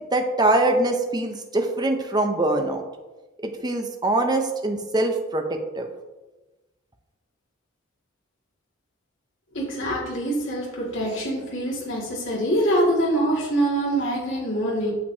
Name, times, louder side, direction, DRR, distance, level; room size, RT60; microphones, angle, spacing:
voice 1, 0.1-2.8 3.4-5.9, right 2 dB, 20° right, 4 dB, 0.7 m, -23 dB
voice 2, 9.5-14.9, right 1 dB, 65° left, -5 dB, 2.2 m, -24 dB
8.6 x 6.7 x 2.8 m, 1.1 s
head